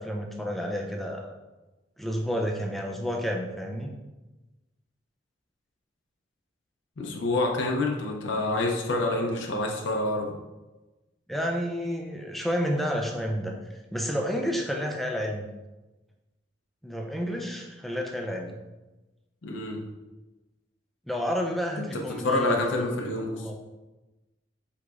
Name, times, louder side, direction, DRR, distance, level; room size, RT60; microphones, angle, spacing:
voice 1, 0.0-1.3 2.0-3.9 11.3-13.6 13.9-15.5 16.8-18.6 21.1-22.9 23.4-23.6, equal, ahead, 1 dB, 0.4 m, -30 dB
voice 2, 7.0-10.3 19.4-19.8 21.8-23.4, left 2 dB, 75° left, 1 dB, 0.6 m, -27 dB
4.8 x 3.8 x 2.4 m, 1.1 s
head